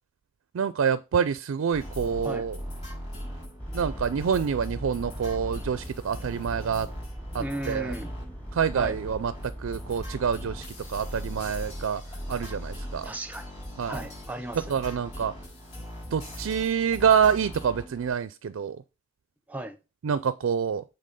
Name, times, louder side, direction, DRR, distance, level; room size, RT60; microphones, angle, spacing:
voice 1, 0.5-2.6 3.7-6.9 7.3-7.9 8.5-12.0 12.3-13.1 13.8-14.0 14.7-15.3 16.1-18.8 20.0-20.8, right 7 dB, 70° right, 0.4 m, -27 dB
sound 1, 1.7-18.1, equal, 30° left, 4.7 m, -40 dB
sound 2, 3.6-11.9, equal, 10° left, 1.2 m, -40 dB
voice 2, 7.3-8.1 8.7-9.0 13.0-13.5 13.9-14.8 19.5-19.8, right 1 dB, 5° right, 0.7 m, -35 dB
7.6 x 3.8 x 5.2 m
head